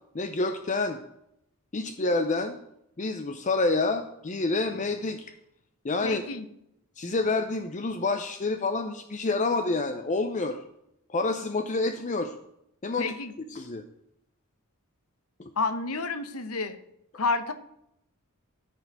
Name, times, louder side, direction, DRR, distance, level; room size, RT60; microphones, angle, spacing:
voice 1, 0.1-1.0 1.7-2.6 3.0-5.3 5.8-6.2 7.0-10.6 11.1-12.3 12.8-13.1 13.5-13.8 15.4-15.5, left 3 dB, 35° left, 7 dB, 0.6 m, -28 dB
voice 2, 6.0-6.5 13.0-13.3 15.6-16.8 17.1-17.5, left 3 dB, 80° left, 10 dB, 1.0 m, -29 dB
13.0 x 5.0 x 6.7 m, 0.79 s
head